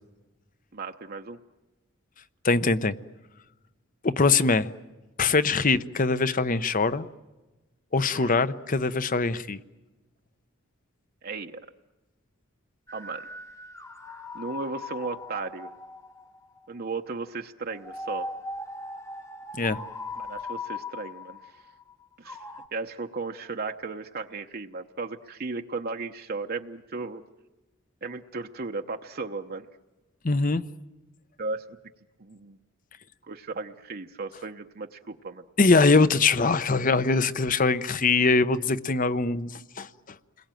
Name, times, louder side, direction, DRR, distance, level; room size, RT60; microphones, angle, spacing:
voice 1, 0.7-1.4 8.1-8.4 11.2-11.6 12.9-13.2 14.1-15.7 16.7-18.3 20.2-21.7 22.2-22.4 22.7-27.2 28.0-29.7 31.4-31.8 32.2-32.6 33.2-35.4, right 3 dB, 45° right, 0.8 m, -35 dB
voice 2, 2.4-3.0 4.0-4.7 5.2-7.0 7.9-9.6 19.6-19.8 30.2-30.6 35.6-39.9, left 3 dB, 40° left, 0.8 m, -22 dB
sound 1, 12.9-16.7 17.7-22.7, left 2 dB, 15° left, 1.1 m, -39 dB
29.0 x 21.5 x 9.1 m
head